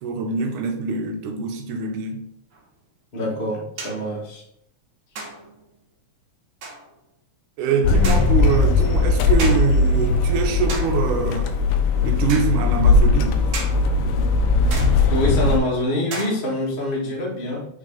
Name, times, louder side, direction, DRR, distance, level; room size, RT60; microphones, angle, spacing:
voice 1, 0.0-2.2 7.6-11.5 12.0-13.5, right 5 dB, 90° right, 2.4 m, -24 dB
sound 1, 2.5-2.6 3.8-4.1 5.2-5.6 6.6-6.9 8.0-8.5 9.4-9.9 10.7-11.1 12.3-12.6 13.5-13.9 14.7-15.2 16.1-16.7, right 3 dB, 65° right, 1.2 m, -33 dB
voice 2, 3.1-4.4 15.1-17.7, left 1 dB, 40° left, 0.7 m, -25 dB
sound 2, 7.8-15.6, left 3 dB, 85° left, 1.4 m, -19 dB
6.4 x 4.1 x 3.8 m
omnidirectional pair, 3.5 m